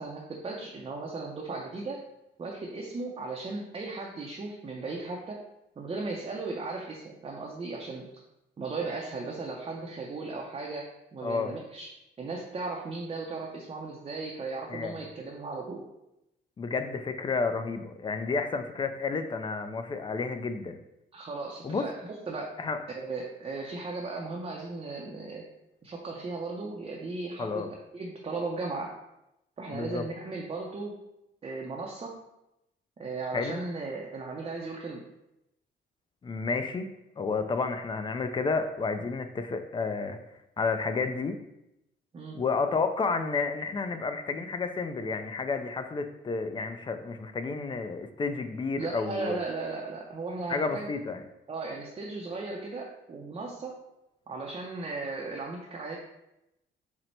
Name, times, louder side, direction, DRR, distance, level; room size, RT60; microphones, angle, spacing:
voice 1, 0.0-2.0 2.4-5.4 5.8-8.1 8.6-11.9 12.2-15.8 21.1-21.9 22.3-22.5 22.9-25.5 25.8-27.6 27.9-28.9 29.6-30.9 31.4-32.1 33.0-35.0 42.1-42.4 48.8-50.9 51.5-53.8 54.3-56.0, right 3 dB, 30° right, -2 dB, 0.5 m, -36 dB
voice 2, 11.2-11.5 14.7-15.0 16.6-20.8 21.6-21.9 22.6-22.8 27.4-27.7 29.7-30.0 33.3-33.6 36.2-36.9 37.2-40.2 40.6-41.4 42.3-49.4 50.5-51.2, left 4 dB, 25° left, 8 dB, 0.4 m, -31 dB
4.3 x 2.1 x 4.1 m, 0.88 s
cardioid pair, 90°, 20 cm